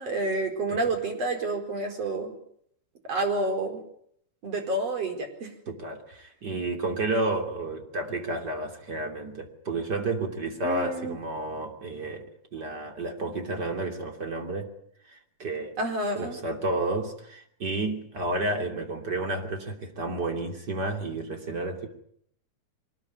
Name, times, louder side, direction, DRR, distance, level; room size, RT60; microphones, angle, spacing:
voice 1, 0.0-2.3 3.1-3.8 4.4-5.5 10.6-11.2 15.8-16.4, right 2 dB, 55° right, 4 dB, 5.7 m, -29 dB
voice 2, 5.7-12.2 12.5-14.7 15.1-15.8 16.1-21.9, right 2 dB, 35° right, 4 dB, 3.4 m, -31 dB
24.0 x 20.0 x 9.6 m, 0.68 s
omnidirectional pair, 3.4 m